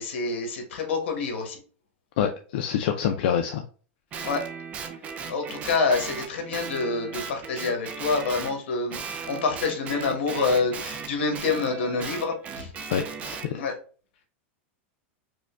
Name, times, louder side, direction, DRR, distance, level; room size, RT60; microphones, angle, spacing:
voice 1, 0.0-1.6 4.2-4.4 5.3-12.7 13.5-13.7, left 4 dB, 85° left, 4 dB, 1.2 m, -27 dB
voice 2, 2.2-3.6 12.9-13.6, left 8 dB, 65° left, 4 dB, 0.4 m, -26 dB
Guitar, 4.1-8.6 8.9-13.5, right 6 dB, 20° right, 0.4 m, -37 dB
4.9 x 2.2 x 2.4 m, 0.40 s
supercardioid pair, 160°, 6 cm